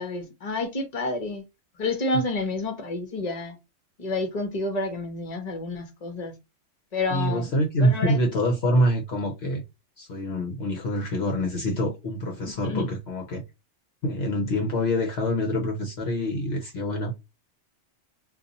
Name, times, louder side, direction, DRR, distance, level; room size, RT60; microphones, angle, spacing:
voice 1, 0.0-1.4 1.8-3.6 4.0-6.3 6.9-7.5 7.8-8.2 12.6-12.9, left 2 dB, 35° left, 1.0 m, -29 dB
voice 2, 7.1-9.6 10.0-13.4 14.0-17.1, equal, 60° left, 1.0 m, -25 dB
2.6 x 2.6 x 3.9 m
omnidirectional pair, 1.3 m